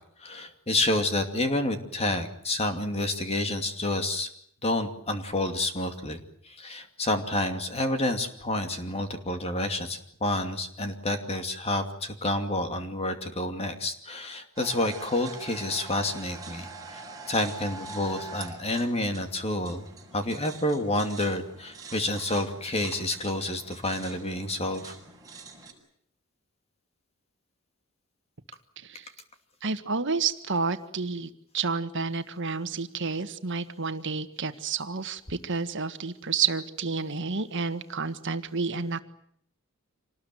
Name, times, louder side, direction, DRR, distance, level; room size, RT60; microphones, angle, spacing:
voice 1, 0.2-4.3 4.6-6.2 6.4-19.8 20.1-24.9, left 1 dB, 30° left, 6 dB, 2.6 m, -29 dB
sound 1, 14.6-25.7, right 3 dB, 15° right, 6.1 m, -44 dB
voice 2, 28.8-29.1 29.6-39.0, right 5 dB, 60° right, 9 dB, 1.6 m, -30 dB
26.5 x 19.5 x 9.3 m, 0.69 s
head